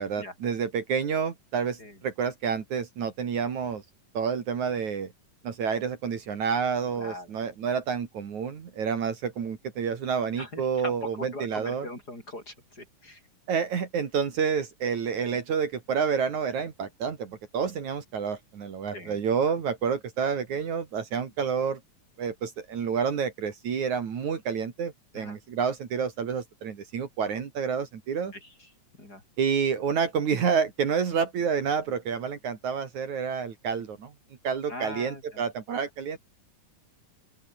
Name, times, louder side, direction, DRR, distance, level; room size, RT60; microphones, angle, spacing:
voice 1, 0.0-3.8 4.1-5.1 5.4-11.9 13.5-21.8 22.2-28.3 29.4-34.1 34.4-36.2, right 6 dB, 60° right, 3.8 m, -29 dB
voice 2, 6.9-7.3 10.4-13.2 18.9-19.2 25.1-25.4 28.3-28.5 29.0-29.2 34.7-35.4, left 1 dB, 25° left, 8.3 m, -40 dB
open air
omnidirectional pair, 3.8 m